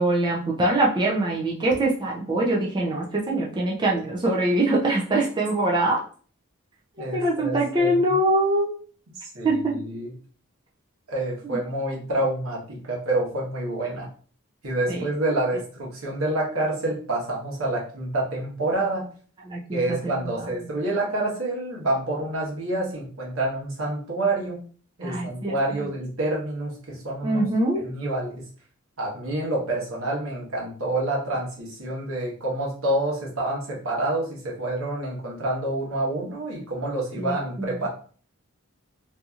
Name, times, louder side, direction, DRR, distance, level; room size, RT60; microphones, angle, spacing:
voice 1, 0.0-6.0 7.1-8.7 9.4-9.8 14.9-15.0 19.5-20.5 25.0-25.8 27.2-27.8 37.1-37.8, right 1 dB, 20° right, -2 dB, 0.5 m, -23 dB
voice 2, 7.0-8.2 9.2-10.1 11.1-14.1 14.6-19.1 19.7-24.6 25.0-27.4 27.8-28.4 29.0-37.9, right 2 dB, 80° right, -3 dB, 1.1 m, -28 dB
2.8 x 2.7 x 2.4 m, 0.42 s
head